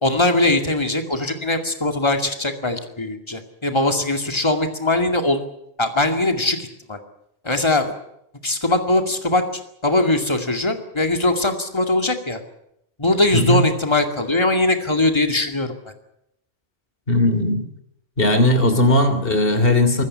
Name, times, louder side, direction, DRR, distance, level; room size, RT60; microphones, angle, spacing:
voice 1, 0.0-5.4 5.8-7.0 7.4-7.9 8.4-9.4 9.8-12.4 13.0-15.7, left 2 dB, 25° left, 5 dB, 2.4 m, -21 dB
voice 2, 13.3-13.6 17.1-17.6 18.2-20.0, left 1 dB, 60° left, 9 dB, 3.4 m, -17 dB
25.0 x 14.5 x 9.7 m, 0.80 s
omnidirectional pair, 1.1 m